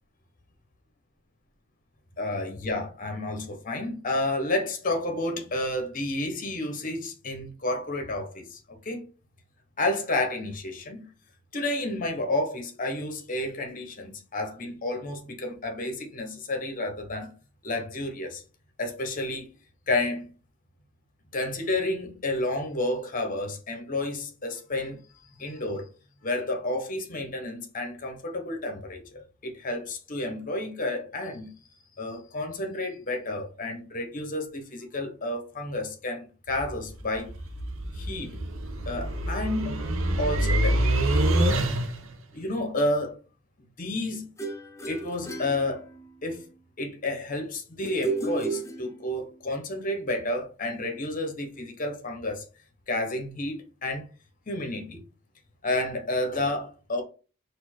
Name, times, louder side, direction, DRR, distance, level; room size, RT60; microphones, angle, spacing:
voice 1, 2.2-9.1 9.8-11.1 11.5-17.3 17.6-18.4 18.8-19.5 19.9-20.3 21.3-25.0 25.4-25.9 26.2-31.5 32.0-37.3 37.9-38.4 38.9-39.9 40.2-41.0 42.3-43.2 43.8-44.3 44.9-45.9 46.2-46.4 46.8-52.4 52.9-54.1 54.5-55.0 55.6-57.0, left 2 dB, 40° left, 1.0 m, -31 dB
sound 1, 36.5-42.2, right 1 dB, 65° right, 0.8 m, -26 dB
sound 2, 44.4-46.3 47.8-49.3, right 3 dB, 15° left, 0.5 m, -33 dB
4.3 x 2.6 x 4.4 m
head